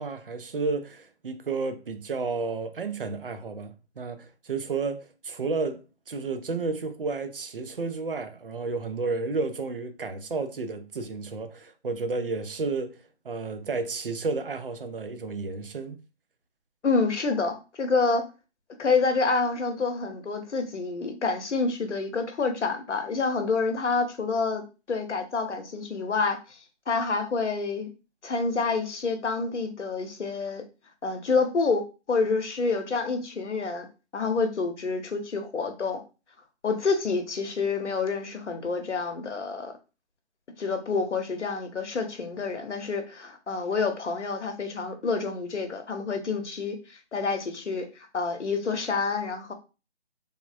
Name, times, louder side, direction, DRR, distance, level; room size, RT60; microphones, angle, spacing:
voice 1, 0.0-16.0, right 4 dB, 50° right, 0.5 m, -32 dB
voice 2, 16.8-18.2 18.8-24.6 24.9-26.6 26.9-27.9 28.2-30.6 31.0-31.8 32.1-33.9 34.1-36.0 36.6-39.7 40.6-49.5, left 4 dB, 80° left, 0.8 m, -28 dB
3.4 x 2.1 x 2.5 m
hypercardioid pair, 175°, 35 cm